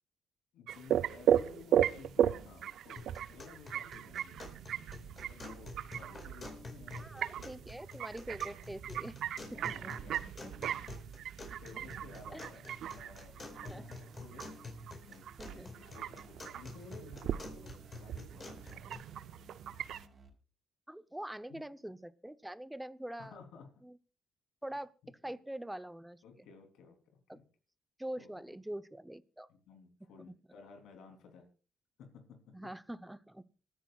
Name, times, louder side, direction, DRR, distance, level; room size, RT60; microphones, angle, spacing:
voice 1, 0.5-4.4 4.7-7.1 7.4-7.6 9.5-10.7 11.1-14.4 15.0-18.8 21.5-21.6 23.2-23.7 26.2-27.0 27.3-27.4 28.2-28.6 29.5-31.5 32.0-32.6, left 5 dB, 85° left, 5 dB, 3.3 m, -55 dB
sound 1, 0.7-20.0, right 10 dB, 75° right, 0.5 m, -36 dB
sound 2, 3.0-19.0, left 3 dB, 35° left, 4.5 m, -50 dB
voice 2, 7.0-9.2 9.6-9.9 10.2-10.5 12.3-12.5 13.7-13.8 15.4-15.7 20.9-23.4 23.8-24.0 24.6-24.9 25.2-26.5 27.3-27.4 28.0-29.5 30.2-30.3 32.5-33.4, right 1 dB, 5° right, 15 dB, 0.7 m, -44 dB
sound 3, 12.8-20.3, right 4 dB, 40° right, 3.5 m, -59 dB
26.5 x 10.0 x 2.4 m, 0.35 s
cardioid pair, 90°, 0 cm